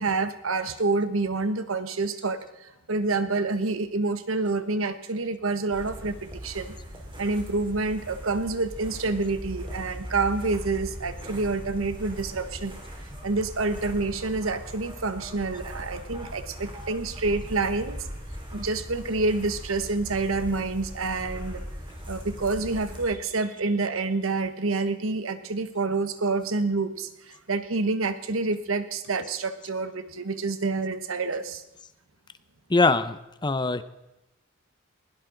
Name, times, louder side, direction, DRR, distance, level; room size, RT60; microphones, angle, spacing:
voice 1, 0.0-6.8 7.2-12.8 13.2-18.1 18.5-21.6 22.1-31.6, right 3 dB, 80° right, 11 dB, 1.1 m, -28 dB
sound 1, 5.7-23.1, equal, 25° right, 3.5 m, -39 dB
voice 2, 32.7-33.8, left 3 dB, 20° left, 13 dB, 0.6 m, -23 dB
20.5 x 17.0 x 3.9 m, 0.92 s
head